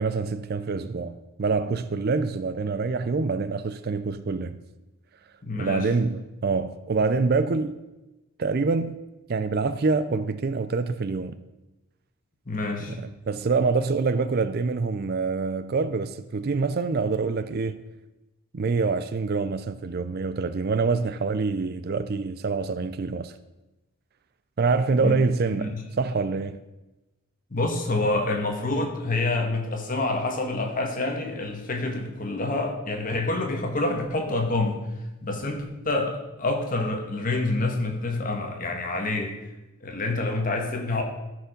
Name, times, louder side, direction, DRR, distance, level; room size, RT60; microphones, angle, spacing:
voice 1, 0.0-4.6 5.6-7.8 8.4-9.0 9.3-11.3 12.9-17.8 18.5-23.3 24.6-26.6, right 4 dB, 45° right, 0.4 m, -26 dB
voice 2, 5.4-5.9 12.4-13.0 24.9-25.2 25.6-25.8 27.5-34.8 35.2-39.3 39.8-41.0, left 2 dB, 40° left, 1.5 m, -27 dB
14.0 x 4.9 x 5.1 m
head